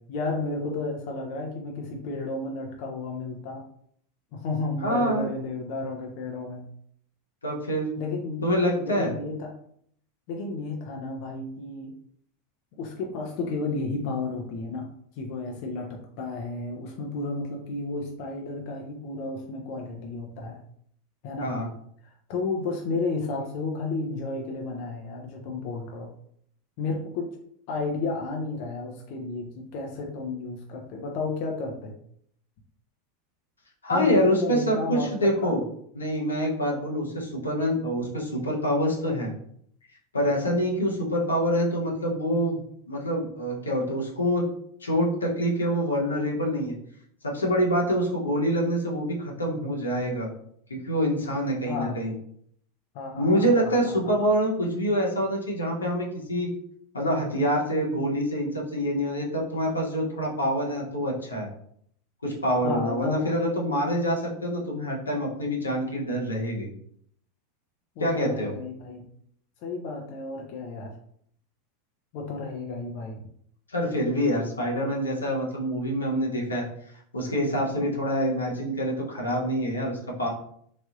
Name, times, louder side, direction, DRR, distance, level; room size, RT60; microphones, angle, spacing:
voice 1, 0.1-3.6 4.3-6.6 8.0-8.4 8.8-9.5 10.3-11.9 12.8-14.9 15.2-20.6 21.2-21.5 22.0-26.1 26.8-27.3 27.7-32.0 33.9-35.6 51.7-52.0 52.9-54.2 62.6-63.3 68.0-69.1 69.6-70.9 72.1-73.2, left 3 dB, 55° left, 1 dB, 0.5 m, -32 dB
voice 2, 4.8-5.3 7.4-7.9 8.4-9.1 21.4-21.7 33.8-35.6 35.9-39.3 40.1-42.6 42.9-44.4 44.8-46.7 47.2-50.3 50.7-52.1 53.2-56.5 56.9-61.5 62.2-66.7 68.0-68.5 73.7-76.6 77.1-80.3, equal, 90° left, -2 dB, 0.8 m, -26 dB
3.3 x 2.6 x 2.4 m, 0.67 s
hypercardioid pair, 85°, 0 cm